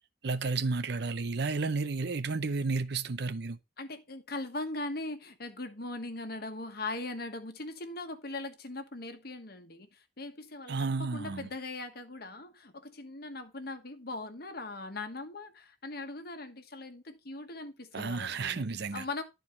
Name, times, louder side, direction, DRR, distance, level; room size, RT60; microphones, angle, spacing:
voice 1, 0.2-3.6 10.7-11.5 17.9-19.0, right 4 dB, 60° right, 0.6 m, -32 dB
voice 2, 3.8-18.6 18.9-19.2, left 2 dB, 55° left, 1.3 m, -40 dB
11.5 x 4.5 x 4.2 m
head